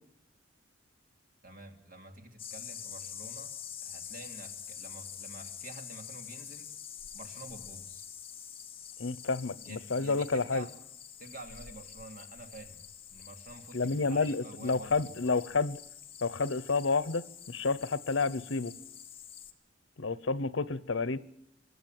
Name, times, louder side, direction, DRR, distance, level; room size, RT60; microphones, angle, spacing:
voice 1, 1.4-3.6 3.8-6.7 7.1-8.0 9.6-10.7 11.2-12.8 13.1-15.1, right 2 dB, 45° right, 2.6 m, -49 dB
sound 1, 2.4-19.5, left 9 dB, 30° left, 1.6 m, -46 dB
voice 2, 9.0-10.6 13.7-15.8 16.2-18.7 20.0-21.2, left 4 dB, 75° left, 0.8 m, -30 dB
25.5 x 13.0 x 9.1 m
head